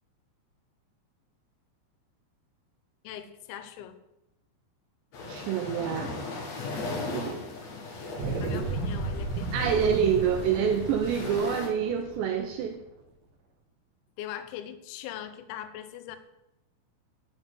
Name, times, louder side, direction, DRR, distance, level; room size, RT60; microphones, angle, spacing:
voice 1, 3.0-4.0 8.4-9.7 14.2-16.2, left 11 dB, 80° left, 9 dB, 2.9 m, -41 dB
sound 1, 5.1-11.7, left 3 dB, 60° left, 1.8 m, -38 dB
voice 2, 5.2-6.1 7.1-7.4 9.5-12.8, right 7 dB, 80° right, 4 dB, 2.6 m, -27 dB
sound 2, 8.2-12.8, right 3 dB, 60° right, 2.5 m, -34 dB
7.6 x 7.5 x 8.1 m, 0.88 s
omnidirectional pair, 5.8 m